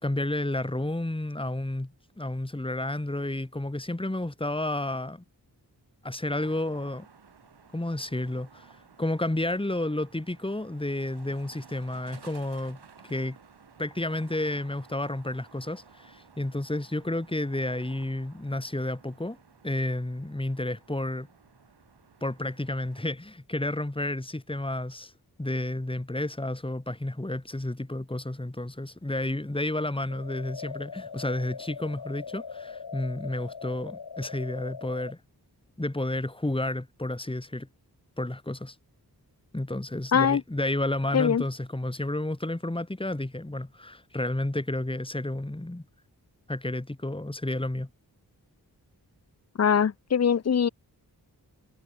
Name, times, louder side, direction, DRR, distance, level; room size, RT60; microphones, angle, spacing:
voice 1, 0.0-5.2 6.0-7.1 7.7-8.7 9.0-13.4 13.8-19.4 19.6-21.3 22.2-25.1 25.4-35.2 35.8-37.7 38.2-38.8 39.5-45.8 46.5-47.9, left 1 dB, 15° left, 3.8 m, -31 dB
sound 1, 6.3-23.0, right 6 dB, 85° right, 7.5 m, -55 dB
sound 2, 30.1-35.1, left 5 dB, 70° left, 4.9 m, -41 dB
voice 2, 40.1-40.4 41.1-41.4 49.6-50.7, left 7 dB, 40° left, 0.7 m, -22 dB
wide cardioid pair, 85°, 39 cm